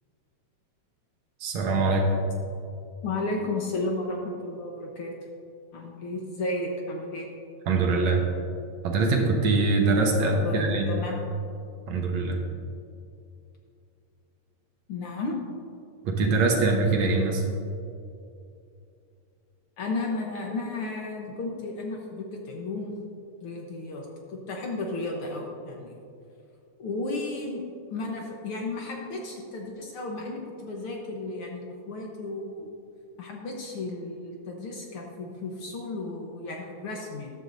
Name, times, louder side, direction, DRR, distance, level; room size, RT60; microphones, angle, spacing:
voice 1, 1.4-2.1 7.7-8.2 8.8-10.9 11.9-12.4 16.0-17.4, right 3 dB, 70° right, 1 dB, 2.2 m, -23 dB
voice 2, 3.0-5.1 5.7-7.3 10.2-11.2 14.9-15.4 19.8-22.9 23.4-26.0 26.8-27.6 27.9-32.7 33.2-37.3, left 2 dB, 60° left, 0 dB, 1.6 m, -33 dB
14.0 x 11.5 x 2.7 m, 2.6 s
omnidirectional pair, 3.4 m